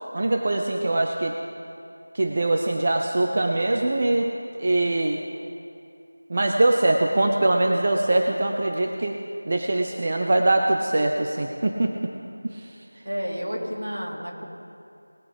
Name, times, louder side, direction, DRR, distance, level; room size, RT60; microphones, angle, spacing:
voice 1, 0.1-1.3 2.1-4.3 4.6-5.2 6.3-9.2 9.5-11.9 12.4-12.7, right 2 dB, 35° right, 3 dB, 0.7 m, -22 dB
voice 2, 13.0-14.5, equal, 75° right, -2 dB, 3.1 m, -30 dB
19.5 x 8.0 x 5.2 m, 2.5 s
figure-of-eight pair, 170°, 0 cm